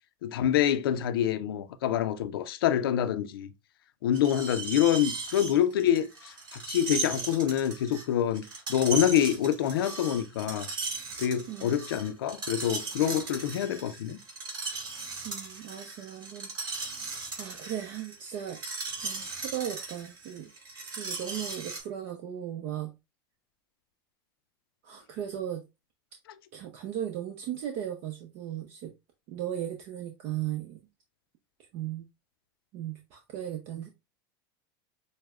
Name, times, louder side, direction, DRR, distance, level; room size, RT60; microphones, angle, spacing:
voice 1, 0.2-3.5 4.0-8.4 8.7-10.7 11.2-14.2, left 10 dB, 85° left, 0.5 m, -26 dB
Screech, 4.1-21.8, right 4 dB, 40° right, 2.6 m, -37 dB
voice 2, 11.5-11.8 15.2-16.5 17.3-18.6 19.0-20.5 21.0-22.9 24.8-25.6 26.5-28.9 29.3-30.8 31.7-32.0 32.7-33.9, right 10 dB, 55° right, 0.7 m, -36 dB
6.4 x 2.1 x 2.4 m
supercardioid pair, 115°, 12 cm